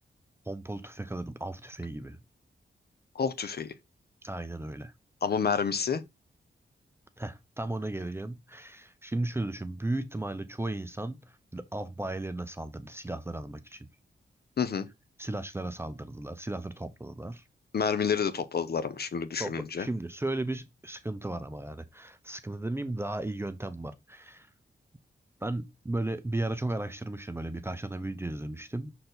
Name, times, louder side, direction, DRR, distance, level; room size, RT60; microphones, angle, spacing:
voice 1, 0.5-2.2 4.2-4.9 7.2-13.9 15.2-17.4 19.4-24.5 25.4-28.9, right 2 dB, 10° right, 0.6 m, -35 dB
voice 2, 3.1-3.7 5.2-6.0 14.6-14.9 17.7-19.9, left 6 dB, 55° left, 0.8 m, -29 dB
6.6 x 4.5 x 3.9 m
wide cardioid pair, 165°, 20 cm